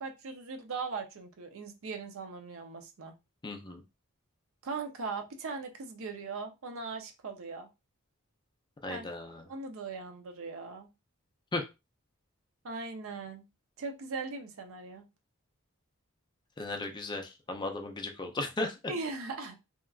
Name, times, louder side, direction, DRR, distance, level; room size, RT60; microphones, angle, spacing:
voice 1, 0.0-3.1 4.6-7.7 8.9-9.1 9.5-10.9 12.6-13.5 13.8-15.1 18.9-19.6, right 4 dB, 65° right, 0.5 m, -39 dB
voice 2, 3.4-3.8 8.8-9.4 11.5-11.7 16.6-18.8, left 2 dB, 20° left, 0.4 m, -36 dB
2.9 x 2.3 x 2.3 m
head